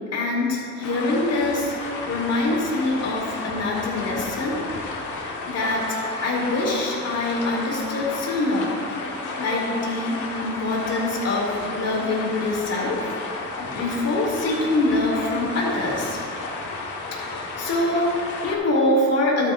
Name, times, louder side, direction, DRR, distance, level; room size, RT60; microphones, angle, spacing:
voice 1, 0.1-4.6 5.5-8.7 9.0-13.0 13.6-16.2 17.1-19.5, left 2 dB, 55° left, -3 dB, 2.4 m, -24 dB
sound 1, 0.8-18.6, left 3 dB, 80° left, 1.3 m, -32 dB
12.5 x 8.4 x 2.5 m, 2.3 s
cardioid pair, 90°, 30 cm